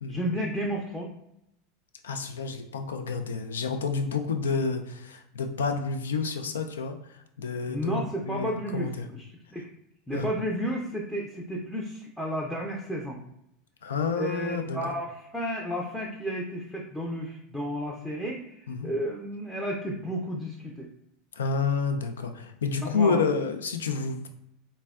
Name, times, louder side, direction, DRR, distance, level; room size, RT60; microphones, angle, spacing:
voice 1, 0.1-1.1 7.7-9.7 10.1-13.2 14.2-20.9 22.8-23.2, equal, 5° left, -2 dB, 0.5 m, -32 dB
voice 2, 2.0-9.1 10.1-10.3 13.8-14.9 18.7-18.9 21.3-24.3, left 4 dB, 85° left, 6 dB, 0.3 m, -29 dB
3.3 x 2.1 x 2.3 m, 0.78 s
hypercardioid pair, 95°, 0 cm